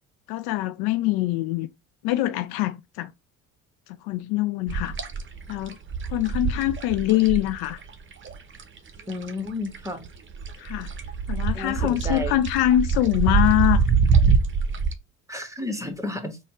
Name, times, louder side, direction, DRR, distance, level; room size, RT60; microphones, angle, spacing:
voice 1, 0.3-1.7 2.0-3.1 3.9-4.9 5.5-5.8 6.1-7.8 10.6-10.9 11.3-13.8, left 15 dB, 65° left, 0.5 m, -24 dB
sound 1, 4.7-9.5 9.7-14.9, right 5 dB, 30° right, 0.8 m, -24 dB
voice 2, 9.1-10.0 11.5-12.4 15.3-16.4, left 1 dB, 5° right, 1.2 m, -32 dB
4.1 x 2.3 x 4.1 m
hypercardioid pair, 55°, 42 cm